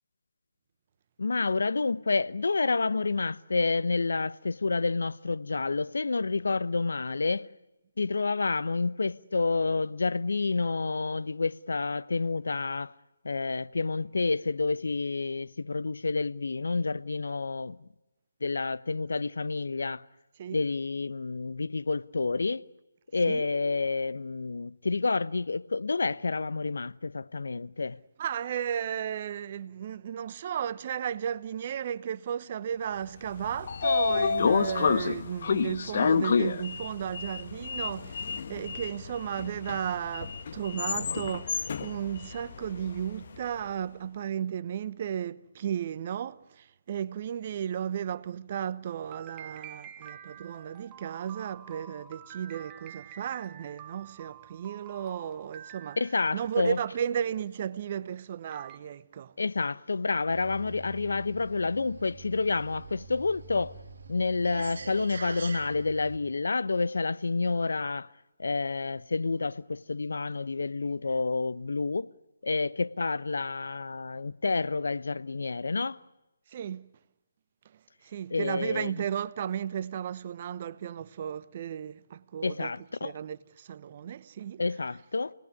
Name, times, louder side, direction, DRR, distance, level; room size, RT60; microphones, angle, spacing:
voice 1, 1.2-7.5 8.0-12.9 13.2-17.8 18.4-20.0 20.5-22.6 23.1-28.0 56.0-56.8 59.4-63.7 64.1-68.1 68.4-72.1 72.4-76.0 78.3-78.9 82.4-83.1 84.6-85.3, left 3 dB, 70° left, 0.9 m, -29 dB
voice 2, 28.2-56.0 56.3-59.3 76.5-76.9 77.7-82.7 83.0-84.6, right 9 dB, 40° right, 0.9 m, -34 dB
Sliding door, 33.2-43.4, left 5 dB, 50° left, 1.3 m, -29 dB
sound 1, 49.1-56.5 58.0-58.1 58.5-58.8, right 9 dB, 20° right, 1.2 m, -48 dB
sound 2, 60.3-66.2, right 4 dB, 60° right, 1.9 m, -45 dB
28.5 x 19.5 x 9.8 m
figure-of-eight pair, 150°, 0 cm